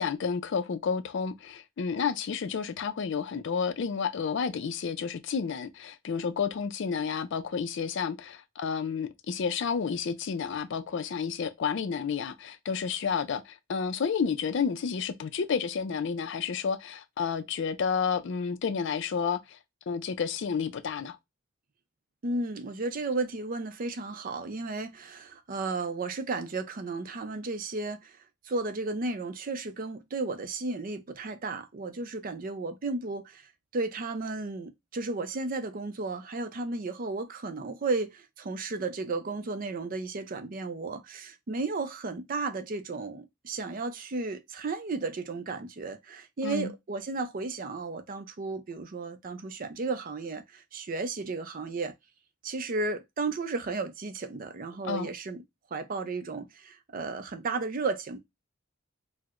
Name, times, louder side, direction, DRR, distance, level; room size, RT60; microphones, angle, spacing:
voice 1, 0.0-19.6 19.9-21.2 46.4-46.7 54.8-55.1, left 6 dB, 60° left, 0.4 m, -31 dB
voice 2, 22.2-28.2 28.4-51.9 52.4-55.4 55.7-58.2, right 3 dB, 45° right, 0.5 m, -34 dB
4.4 x 2.0 x 2.4 m
head